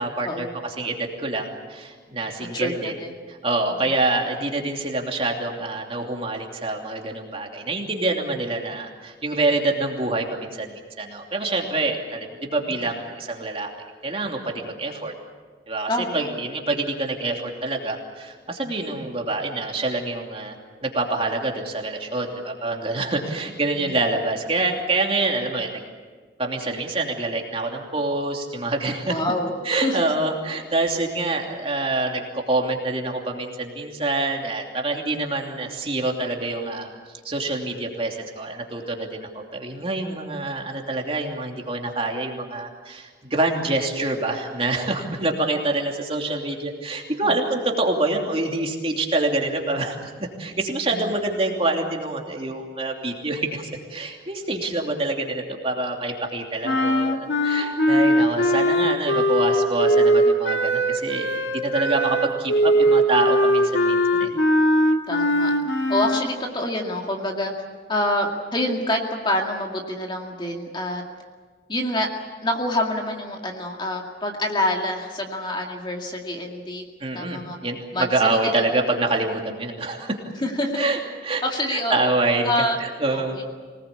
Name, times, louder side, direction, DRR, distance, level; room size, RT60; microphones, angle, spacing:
voice 1, 0.0-2.9 3.4-10.7 11.0-13.7 14.0-15.1 15.7-20.5 20.8-25.8 26.4-29.2 29.6-36.9 37.2-50.1 50.4-61.3 61.6-64.3 77.0-80.2 80.7-81.4 81.7-82.5 82.8-83.4, right 2 dB, 30° right, 1 dB, 2.9 m, -26 dB
voice 2, 15.9-16.3 23.8-23.9 29.1-30.0 47.2-47.3 50.9-51.1 65.1-65.5 65.9-67.5 67.9-71.0 71.7-72.1 72.4-76.8 77.1-77.6 77.9-78.5 80.4-80.9 81.4-82.1 82.4-82.8 83.1-83.4, left 1 dB, 25° left, 1 dB, 2.2 m, -26 dB
sound 1, 56.6-66.3, equal, 85° left, 2.0 m, -20 dB
25.5 x 19.5 x 8.5 m, 1.5 s
head